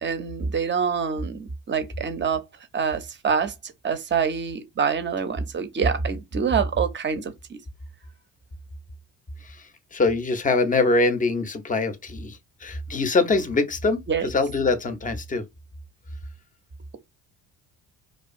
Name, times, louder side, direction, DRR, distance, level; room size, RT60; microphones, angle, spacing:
voice 1, 0.0-2.4 2.7-7.6 14.1-14.3, right 6 dB, 25° right, 0.6 m, -26 dB
voice 2, 9.9-15.4, left 3 dB, 20° left, 0.6 m, -23 dB
2.3 x 2.3 x 2.5 m
hypercardioid pair, 50°, 45 cm